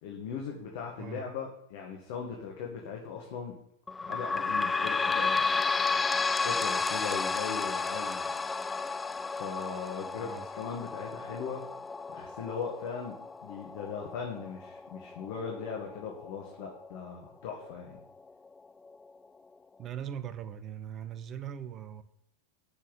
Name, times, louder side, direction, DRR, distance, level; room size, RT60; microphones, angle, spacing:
voice 1, 0.0-3.6 4.0-5.5 6.4-8.3 9.3-11.6 12.1-18.0, left 6 dB, 50° left, 1.9 m, -39 dB
sound 1, 3.9-17.0 17.6-17.7 18.0-18.1 18.9-19.0, left 4 dB, 15° left, 0.4 m, -32 dB
voice 2, 19.8-22.0, right 9 dB, 30° right, 0.9 m, -40 dB
8.9 x 6.6 x 8.3 m
figure-of-eight pair, 90°, 0 cm